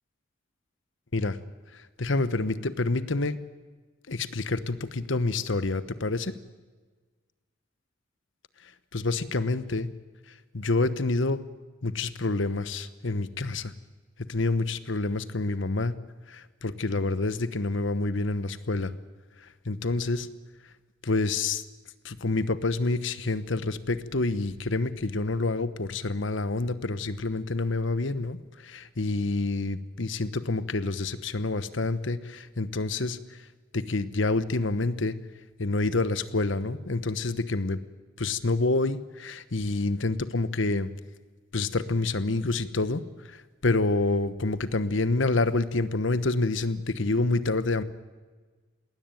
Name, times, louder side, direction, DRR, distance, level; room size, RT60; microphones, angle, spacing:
voice 1, 1.7-3.4 4.1-6.3 8.9-9.9 10.5-11.4 11.8-13.7 14.3-15.9 16.3-18.9 19.4-20.3 21.0-21.6 22.0-33.4 33.7-35.2 35.6-37.8 38.2-40.9 41.5-47.8, left 3 dB, 65° left, 14 dB, 1.1 m, -28 dB
20.0 x 18.5 x 9.1 m, 1.4 s
head